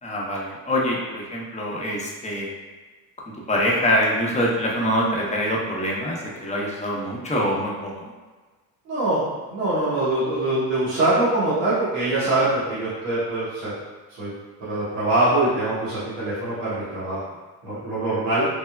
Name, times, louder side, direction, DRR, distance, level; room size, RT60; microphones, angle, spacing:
voice 1, 0.0-2.5 3.5-8.1, equal, 15° left, -4 dB, 0.7 m, -24 dB
voice 2, 8.9-9.2 9.5-13.7 14.2-14.3 14.7-17.2 17.6-18.5, right 2 dB, 80° right, -11 dB, 1.1 m, -23 dB
3.4 x 2.1 x 2.3 m, 1.3 s
supercardioid pair, 65°, 44 cm